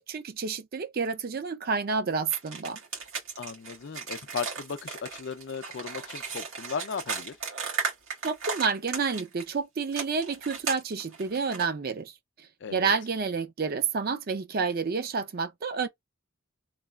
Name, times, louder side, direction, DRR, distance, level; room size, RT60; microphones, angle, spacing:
voice 1, 0.0-2.8 8.2-12.1 12.7-15.9, right 5 dB, 45° right, 0.4 m, -29 dB
sound 1, 2.3-9.5 9.9-11.7, right 5 dB, 70° right, 1.7 m, -35 dB
voice 2, 3.4-7.4 12.6-12.9, left 6 dB, 55° left, 0.4 m, -36 dB
3.2 x 2.3 x 2.3 m
head